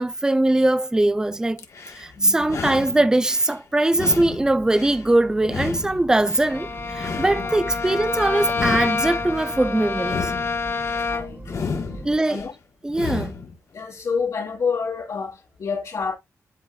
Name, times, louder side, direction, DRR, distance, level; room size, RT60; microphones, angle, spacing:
voice 1, 0.0-1.6 1.9-10.3 12.0-12.4 12.8-13.3, right 2 dB, 10° right, 0.5 m, -21 dB
sound 1, 1.6-2.1 2.4-3.5 3.9-5.1 5.4-6.5 6.9-8.0 8.5-9.6 10.0-11.0 11.5-12.5 12.9-13.5, left 5 dB, 65° left, 1.3 m, -32 dB
voice 2, 2.1-2.5 7.3-7.6 11.0-11.6 12.3-12.5 13.7-16.1, left 5 dB, 80° left, 2.7 m, -28 dB
sound 2, 4.3-12.2, right 2 dB, 30° right, 1.2 m, -40 dB
Bowed string instrument, 6.5-11.5, left 4 dB, 45° left, 0.7 m, -27 dB
11.0 x 3.8 x 2.3 m
wide cardioid pair, 125°, 6 cm